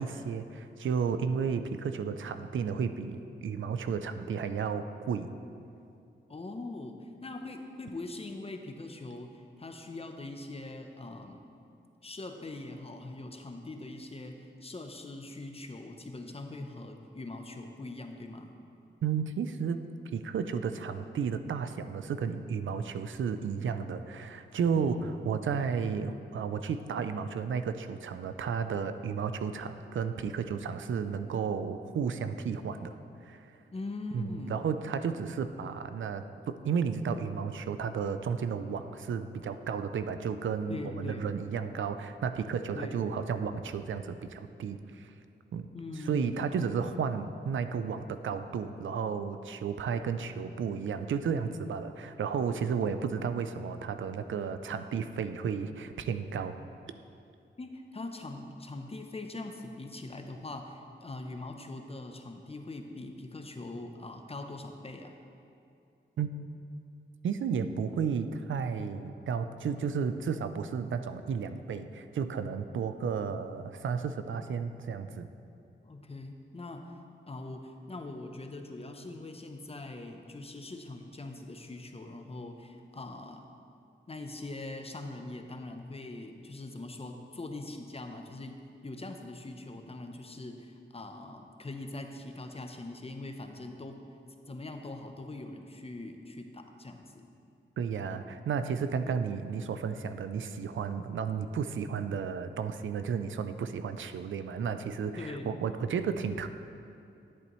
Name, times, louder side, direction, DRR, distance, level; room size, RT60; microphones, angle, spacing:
voice 1, 0.0-5.3 19.0-19.8 20.1-32.9 33.2-33.5 34.1-45.1 45.5-45.7 46.1-56.6 66.2-66.3 67.2-75.3 97.8-106.5, right 6 dB, 90° right, 10 dB, 0.4 m, -33 dB
voice 2, 6.3-11.4 12.0-18.5 24.7-25.1 33.7-34.6 40.7-41.3 42.7-43.1 45.7-46.5 57.6-65.2 75.8-76.9 77.3-83.5 84.1-94.0 94.5-97.3 99.0-99.3 105.2-105.5, left 2 dB, 30° left, 5 dB, 0.7 m, -42 dB
10.5 x 8.5 x 3.1 m, 2.6 s
wide cardioid pair, 85°, 19 cm